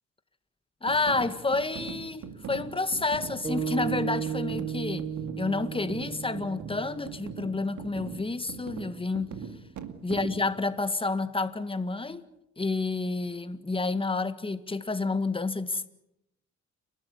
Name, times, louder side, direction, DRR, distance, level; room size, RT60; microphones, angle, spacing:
voice 1, 0.8-5.1 5.4-9.3 10.0-12.2 12.6-15.9, left 3 dB, 15° left, 1.8 m, -29 dB
sound 1, 0.9-10.5, right 6 dB, 70° right, 2.2 m, -41 dB
sound 2, 3.4-7.8, right 7 dB, 25° right, 5.5 m, -34 dB
30.0 x 13.0 x 9.8 m
cardioid pair, 90°, 30 cm